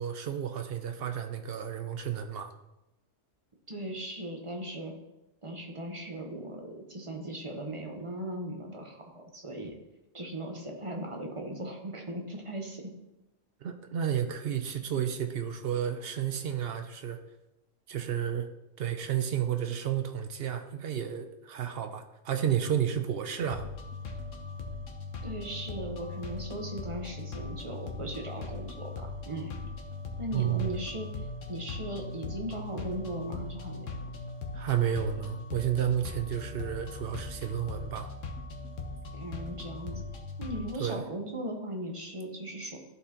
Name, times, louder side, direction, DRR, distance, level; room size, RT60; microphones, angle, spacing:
voice 1, 0.0-2.5 13.6-17.2 17.9-18.5 18.8-23.7 30.3-30.8 34.5-38.1 40.8-41.0, right 9 dB, 60° right, 8 dB, 0.6 m, -31 dB
voice 2, 3.7-4.9 5.4-9.8 10.1-12.9 25.2-29.5 30.2-31.1 31.5-33.9 39.1-40.0 40.4-42.8, right 1 dB, 30° right, 1 dB, 0.8 m, -38 dB
sound 1, 23.4-40.7, left 3 dB, 75° left, 1.3 m, -40 dB
12.5 x 4.2 x 2.9 m, 0.95 s
omnidirectional pair, 1.3 m